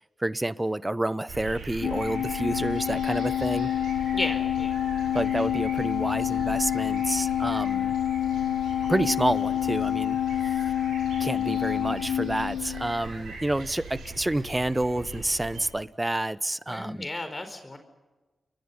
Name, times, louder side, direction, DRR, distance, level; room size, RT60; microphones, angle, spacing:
voice 1, 0.2-3.7 5.1-7.9 8.9-10.2 10.5-10.6 11.2-17.1, right 1 dB, 20° right, 17 dB, 1.0 m, -29 dB
sound 1, 1.3-15.7, right 3 dB, 85° right, 7.3 m, -41 dB
Organ, 1.8-13.1, left 11 dB, 75° left, 1.2 m, -27 dB
voice 2, 4.1-4.8 16.7-17.8, left 2 dB, 30° left, 8 dB, 4.6 m, -33 dB
29.5 x 23.0 x 5.6 m, 1.2 s
supercardioid pair, 40°, 0 cm